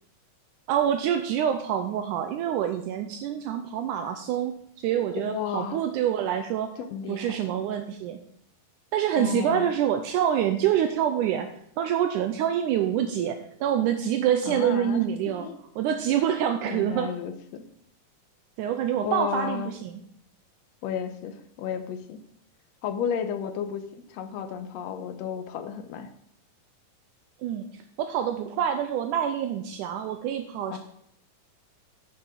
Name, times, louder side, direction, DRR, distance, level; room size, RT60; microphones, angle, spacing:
voice 1, 0.7-4.5 4.8-6.7 7.1-8.2 8.9-11.5 11.8-15.5 15.8-17.1 18.6-20.0 27.4-27.7 28.0-30.8, right 9 dB, 80° right, 7 dB, 2.0 m, -26 dB
voice 2, 5.2-5.8 6.8-7.4 9.2-9.7 14.5-15.5 16.7-17.6 19.0-19.7 20.8-22.2 22.8-26.1 30.7-30.8, left 7 dB, 75° left, 7 dB, 1.6 m, -33 dB
10.0 x 5.7 x 6.6 m, 0.69 s
omnidirectional pair, 3.9 m